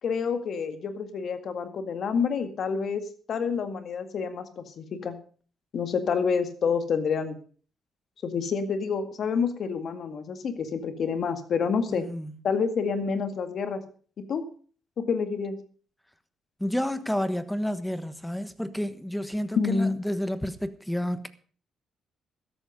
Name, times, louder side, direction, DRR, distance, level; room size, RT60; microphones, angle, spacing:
voice 1, 0.0-5.2 5.7-7.4 8.2-12.0 12.4-13.8 14.2-14.4 15.0-15.6 19.6-20.0, left 5 dB, 60° left, 2.0 m, -28 dB
voice 2, 11.9-12.3 16.6-21.3, equal, 5° left, 1.2 m, -30 dB
13.5 x 11.5 x 5.3 m
cardioid pair, 90°, 0 cm